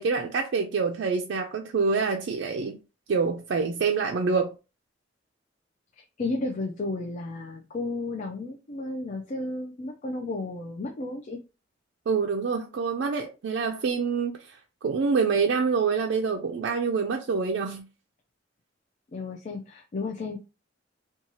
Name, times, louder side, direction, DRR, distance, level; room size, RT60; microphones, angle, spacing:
voice 1, 0.0-2.8 3.1-4.5 12.1-17.8, right 5 dB, 65° right, 0.3 m, -26 dB
voice 2, 6.2-11.4 19.1-20.4, left 2 dB, 40° left, 0.4 m, -33 dB
2.6 x 2.3 x 2.9 m
head